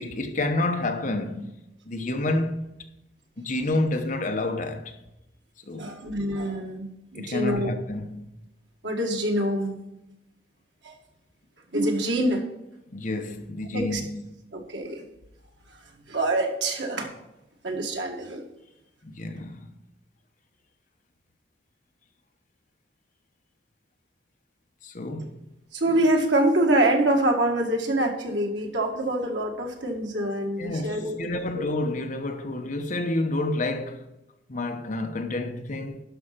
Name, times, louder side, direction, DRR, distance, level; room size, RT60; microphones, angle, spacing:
voice 1, 0.0-1.6 1.8-2.7 3.4-4.9 5.6-5.9 7.1-8.3 12.9-14.4 19.0-19.7 24.8-25.4 30.6-34.1 34.5-36.0, left 2 dB, 45° left, 1.1 m, -29 dB
voice 2, 5.8-7.7 8.8-9.8 10.8-10.9 11.7-12.4 13.7-14.0 14.5-15.0 16.1-17.1 17.6-18.4 25.7-31.2, right 1 dB, 85° right, 2.0 m, -25 dB
11.5 x 5.6 x 5.9 m
head